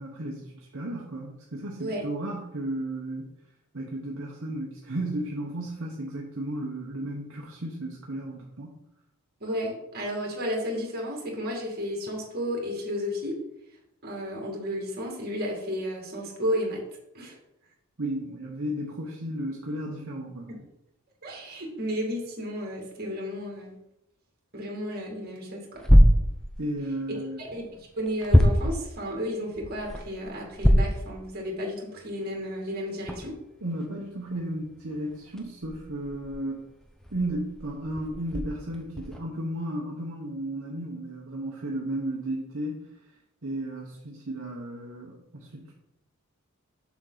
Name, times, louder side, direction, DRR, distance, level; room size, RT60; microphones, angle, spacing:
voice 1, 0.0-3.3 3.7-8.8 18.0-20.5 26.6-27.4 33.6-36.7 37.1-42.9 43.4-45.7, right 1 dB, 60° right, -2 dB, 1.0 m, -34 dB
voice 2, 9.4-13.4 14.0-16.8 17.1-17.4 20.5-20.6 21.2-23.7 24.5-25.8 27.1-27.6 28.0-33.4, equal, 45° right, 0 dB, 2.2 m, -32 dB
sound 1, 25.7-26.9 27.4-29.0 29.5-31.1 31.5-31.6 32.2-32.3 33.0-39.2, equal, 5° left, 0.7 m, -24 dB
7.1 x 6.2 x 4.0 m, 0.86 s
head